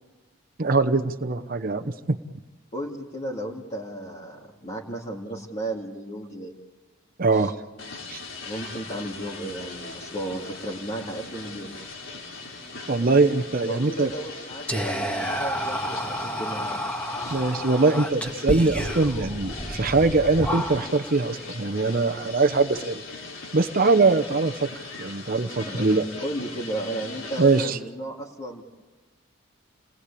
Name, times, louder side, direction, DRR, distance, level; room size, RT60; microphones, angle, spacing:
voice 1, 0.6-2.2 7.2-7.5 8.1-8.2 12.9-14.1 17.3-23.0 23.5-26.0 27.4-27.8, right 3 dB, 45° right, 6 dB, 0.9 m, -22 dB
voice 2, 2.7-6.5 7.3-7.5 8.4-11.7 13.6-16.6 17.1-17.4 25.6-28.6, right 1 dB, 35° left, -2 dB, 2.2 m, -34 dB
sound 1, 7.8-27.7, left 3 dB, 75° left, 3.8 m, -40 dB
Whispering, 14.7-21.1, equal, 5° left, 1.9 m, -30 dB
28.5 x 19.5 x 8.5 m, 1.2 s
head